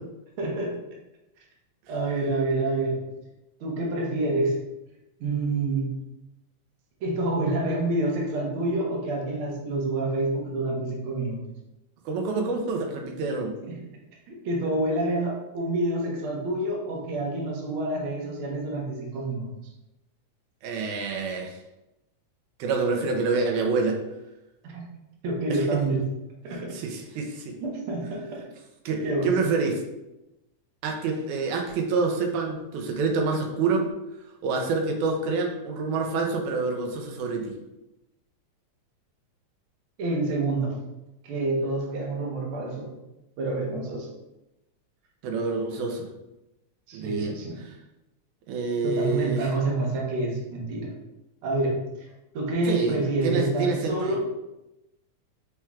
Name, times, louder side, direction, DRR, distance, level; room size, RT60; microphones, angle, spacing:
voice 1, 0.4-0.8 1.9-3.0 3.6-4.5 5.2-5.9 7.0-11.4 13.6-13.7 14.3-19.5 24.6-24.8 25.2-26.0 26.4-26.7 27.6-28.4 29.0-29.3 40.0-40.7 41.2-42.9 43.4-44.1 46.9-47.6 48.8-50.9 51.4-51.8 52.3-54.2, right 2 dB, 60° right, -2 dB, 1.5 m, -27 dB
voice 2, 12.1-13.5 20.6-21.6 22.6-24.0 25.5-25.6 26.7-27.5 28.9-29.7 30.8-33.9 34.4-37.6 45.2-46.1 46.9-47.4 48.5-49.4 52.7-54.2, right 4 dB, 90° right, 3 dB, 2.1 m, -27 dB
4.4 x 4.3 x 2.3 m, 0.93 s
omnidirectional pair, 3.3 m